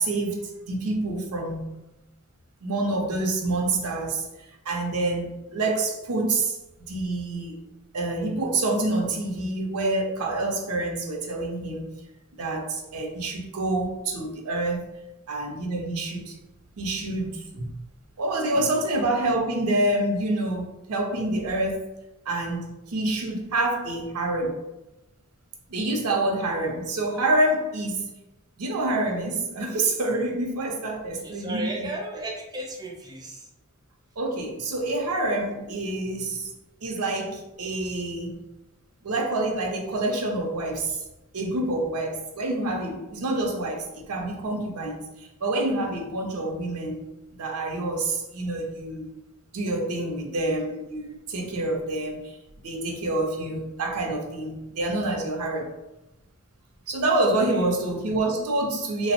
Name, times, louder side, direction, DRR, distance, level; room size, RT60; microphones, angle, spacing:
voice 1, 0.0-1.7 2.6-4.3 4.7-7.6 7.9-11.9 12.4-15.0 15.3-16.4 16.8-17.7 18.2-21.9 22.3-24.6 25.7-28.1 28.6-31.9 34.2-36.5 36.8-38.4 39.0-41.0 41.3-47.1 47.4-49.1 49.5-52.4 52.6-55.7 56.9-59.1, right 2 dB, 80° right, 0.5 m, -27 dB
voice 2, 31.1-33.5 57.5-57.6, right 1 dB, 20° right, 0.4 m, -35 dB
2.8 x 2.0 x 2.8 m
head